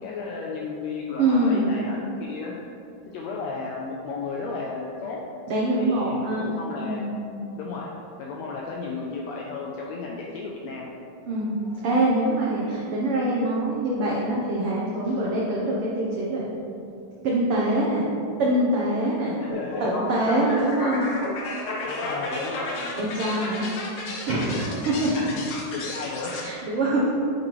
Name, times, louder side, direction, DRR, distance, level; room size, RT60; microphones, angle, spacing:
voice 1, 0.0-2.5 3.1-5.2 5.8-7.1 7.5-7.9 8.2-10.9 19.4-19.9 20.6-20.7 21.8-22.9 25.2-26.4, left 4 dB, 85° left, -2 dB, 1.5 m, -33 dB
voice 2, 1.2-1.7 5.5-6.5 6.8-7.4 11.2-16.4 17.2-18.0 18.4-19.4 19.8-21.0 23.0-23.7 24.3-25.1 26.4-27.1, right 1 dB, 85° right, -4 dB, 1.2 m, -24 dB
sound 1, 19.5-26.5, left 2 dB, 65° left, 1.3 m, -33 dB
8.4 x 5.3 x 3.1 m, 2.7 s
omnidirectional pair, 3.6 m